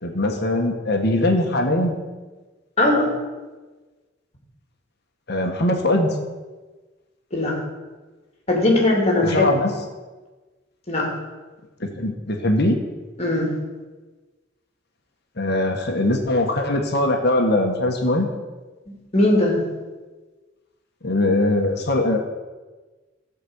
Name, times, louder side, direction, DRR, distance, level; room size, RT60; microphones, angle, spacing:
voice 1, 0.0-2.0 5.3-6.1 9.2-9.7 11.8-12.8 15.4-18.3 21.0-22.2, left 1 dB, 55° left, 3 dB, 1.6 m, -21 dB
voice 2, 2.8-3.1 7.3-7.6 8.5-9.5 10.9-11.1 13.2-13.5 18.9-19.6, left 1 dB, 30° left, -1 dB, 2.9 m, -19 dB
15.0 x 5.4 x 8.1 m, 1.3 s
head